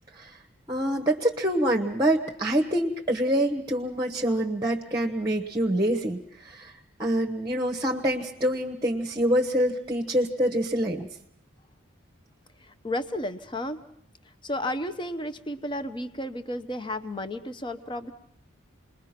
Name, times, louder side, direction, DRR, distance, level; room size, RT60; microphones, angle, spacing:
voice 1, 0.7-6.7 7.0-11.1, right 1 dB, 20° right, 4 dB, 1.1 m, -26 dB
voice 2, 12.6-13.8 14.2-18.1, left 1 dB, 25° left, 10 dB, 0.9 m, -33 dB
28.0 x 21.0 x 5.9 m, 0.72 s
head